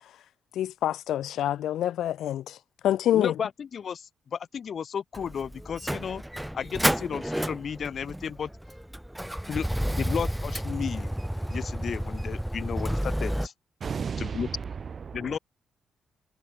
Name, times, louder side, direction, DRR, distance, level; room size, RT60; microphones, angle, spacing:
voice 1, 0.6-2.6 2.8-3.3, left 12 dB, 80° left, 0.7 m, -26 dB
voice 2, 3.1-6.2 6.5-8.5 9.5-11.1 11.5-13.5 14.2-14.5 15.1-15.4, left 7 dB, 50° left, 6.8 m, -33 dB
Motor vehicle (road), 5.1-13.5, equal, 5° right, 4.2 m, -31 dB
voice 3, 13.8-15.4, right 6 dB, 40° right, 5.7 m, -34 dB
cardioid pair, 125°, 0 cm